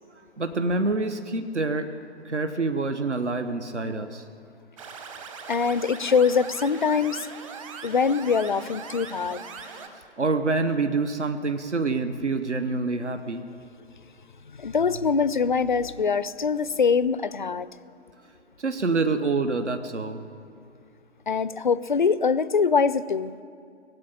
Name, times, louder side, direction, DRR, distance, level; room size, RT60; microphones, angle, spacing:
voice 1, 0.4-1.9 2.2-4.2 10.2-13.4 18.6-20.2, right 3 dB, 75° right, 9 dB, 1.0 m, -26 dB
sound 1, 4.8-9.9, right 5 dB, 25° right, 1.0 m, -40 dB
voice 2, 5.5-7.3 7.8-9.4 14.6-17.7 21.3-23.3, left 5 dB, 45° left, 16 dB, 0.4 m, -23 dB
18.5 x 8.0 x 8.9 m, 2.3 s
figure-of-eight pair, 135°, 36 cm